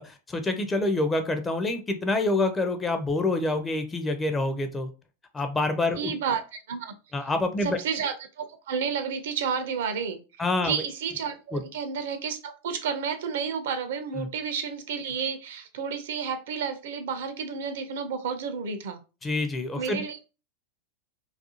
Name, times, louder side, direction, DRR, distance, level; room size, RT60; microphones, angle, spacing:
voice 1, 0.0-4.9 5.3-6.1 7.1-7.8 10.4-10.8 11.5-11.6 14.2-14.3 19.2-20.0, left 2 dB, 15° left, 0.4 m, -27 dB
voice 2, 5.9-6.4 6.7-6.9 7.6-10.2 10.6-19.0 19.8-20.2, right 6 dB, 55° right, 0.4 m, -31 dB
2.4 x 2.3 x 2.7 m
figure-of-eight pair, 90°, 0 cm